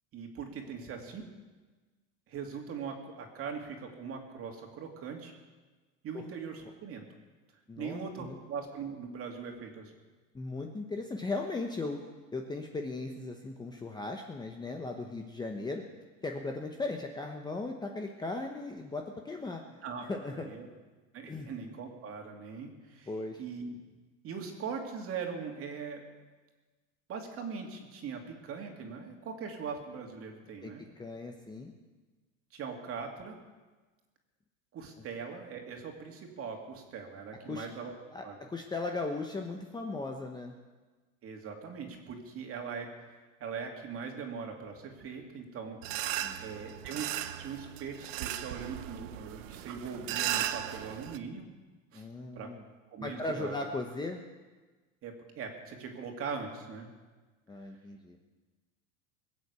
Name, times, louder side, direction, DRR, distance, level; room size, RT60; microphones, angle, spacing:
voice 1, 0.1-1.2 2.3-5.3 6.0-7.0 7.8-10.0 19.8-20.7 21.1-23.1 23.4-23.8 24.2-26.0 27.1-30.8 32.5-33.3 34.7-37.9 38.2-38.4 41.2-42.9 43.4-45.8 46.4-51.5 51.9-52.1 52.3-52.5 52.9-53.6 55.0-56.9, right 5 dB, 35° right, 3 dB, 2.6 m, -41 dB
voice 2, 7.7-8.4 10.3-12.0 12.3-15.8 16.2-19.6 20.0-20.5 21.3-21.5 23.1-23.4 30.6-31.7 37.5-37.7 38.1-40.5 46.2-46.4 51.9-52.6 53.0-54.2 57.5-58.2, left 3 dB, 10° left, 3 dB, 1.0 m, -37 dB
sound 1, 45.8-51.2, right 12 dB, 70° right, 1.0 m, -36 dB
21.0 x 8.0 x 8.3 m, 1.3 s
supercardioid pair, 135°, 40 cm